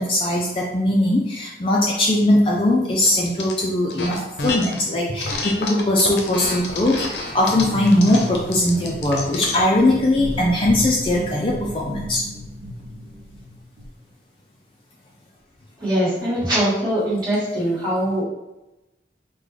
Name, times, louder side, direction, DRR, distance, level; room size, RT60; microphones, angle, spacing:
voice 1, 0.0-4.2 4.4-12.2, left 1 dB, 30° left, -3 dB, 0.4 m, -20 dB
sound 1, 3.0-3.5 3.9-4.8 5.2-9.6, left 3 dB, 80° left, 0.6 m, -29 dB
sound 2, 7.1-13.9, equal, 60° right, 0.6 m, -33 dB
voice 2, 15.8-18.2, right 1 dB, 25° right, -8 dB, 1.4 m, -22 dB
3.7 x 2.2 x 3.2 m, 0.97 s
head